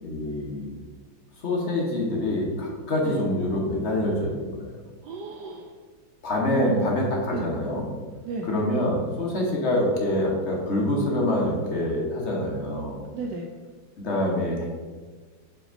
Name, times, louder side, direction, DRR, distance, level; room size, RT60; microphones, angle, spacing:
voice 1, 0.0-0.7 1.4-4.7 6.2-7.9 8.4-13.0 14.0-14.6, left 1 dB, 45° left, -2 dB, 1.1 m, -26 dB
voice 2, 5.0-5.8 6.5-7.0 7.3-7.5 8.2-8.5 13.1-13.5, right 3 dB, 75° right, 1 dB, 1.0 m, -32 dB
5.8 x 3.5 x 5.1 m, 1.4 s
omnidirectional pair, 2.1 m